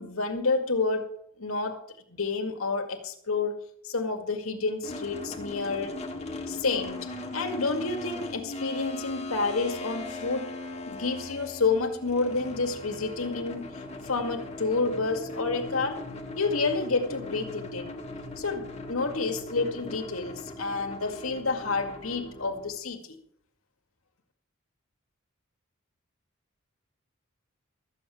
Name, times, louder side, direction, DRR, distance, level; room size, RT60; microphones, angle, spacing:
voice 1, 0.0-1.8 2.1-6.0 6.5-10.5 10.9-16.0 16.4-17.9 18.4-23.2, left 3 dB, 85° left, 5 dB, 2.0 m, -29 dB
sound 1, 4.8-22.7, left 2 dB, 30° left, 1.8 m, -39 dB
14.0 x 8.1 x 7.1 m, 0.65 s
head